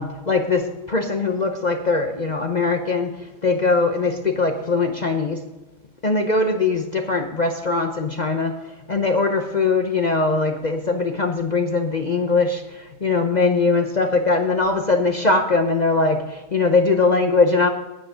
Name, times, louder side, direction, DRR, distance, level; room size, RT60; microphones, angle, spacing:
voice 1, 0.0-3.1 3.4-5.4 6.0-8.6 8.9-17.7, left 3 dB, 45° left, 5 dB, 0.6 m, -21 dB
10.5 x 9.4 x 5.1 m, 1.1 s
omnidirectional pair, 1.8 m